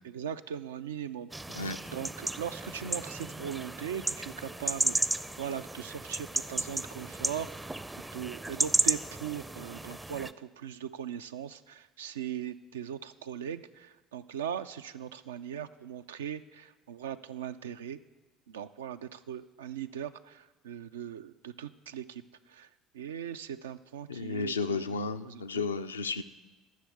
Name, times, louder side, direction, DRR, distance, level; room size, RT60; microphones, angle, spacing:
voice 1, 0.0-18.0 18.5-22.2 22.5-24.9 25.2-25.6, right 9 dB, 80° right, 11 dB, 0.4 m, -40 dB
sound 1, 1.3-10.3, right 2 dB, 15° right, 0.5 m, -33 dB
voice 2, 24.1-26.2, left 4 dB, 90° left, 9 dB, 0.4 m, -33 dB
11.5 x 6.4 x 8.3 m, 1.2 s
hypercardioid pair, 60°, 0 cm